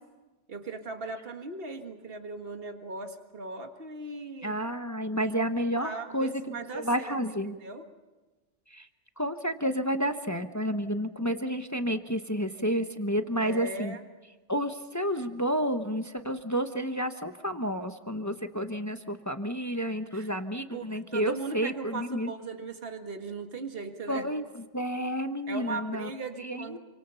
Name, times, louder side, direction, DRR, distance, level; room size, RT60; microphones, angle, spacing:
voice 1, 0.5-4.6 5.1-5.3 5.8-7.9 13.4-14.0 20.1-20.3 20.7-24.3 25.5-26.8, right 3 dB, 55° right, 5 dB, 2.0 m, -38 dB
voice 2, 4.4-7.5 8.7-8.9 9.2-14.0 14.5-22.3 24.1-26.1 26.4-26.8, equal, 15° left, 7 dB, 1.0 m, -30 dB
28.5 x 25.5 x 5.7 m, 1.2 s
omnidirectional pair, 1.2 m